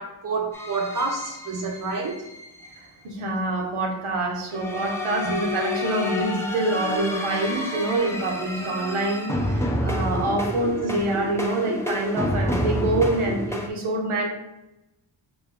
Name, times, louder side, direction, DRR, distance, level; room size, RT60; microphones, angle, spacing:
voice 1, 0.0-2.2 5.2-5.3, right 4 dB, 45° right, 3 dB, 0.7 m, -29 dB
sound 1, 0.5-2.8 4.5-13.7, left 1 dB, 5° left, 0.5 m, -29 dB
voice 2, 2.8-14.3, right 2 dB, 85° right, 1 dB, 0.9 m, -26 dB
3.4 x 2.7 x 3.6 m, 0.91 s
wide cardioid pair, 80°, 48 cm